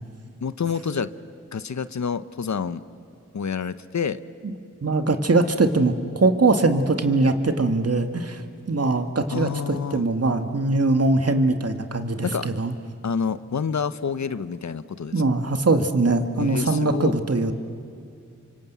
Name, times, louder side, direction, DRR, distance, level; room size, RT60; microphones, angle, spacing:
voice 1, 0.4-1.1 1.5-2.8 3.3-4.2 9.3-10.1 12.2-12.5 13.0-15.1 16.4-17.1, left 6 dB, 65° left, 14 dB, 0.9 m, -28 dB
voice 2, 4.8-12.7 15.1-17.5, right 3 dB, 50° right, 7 dB, 2.0 m, -22 dB
28.0 x 24.5 x 8.3 m, 2.4 s
cardioid pair, 40°, 30 cm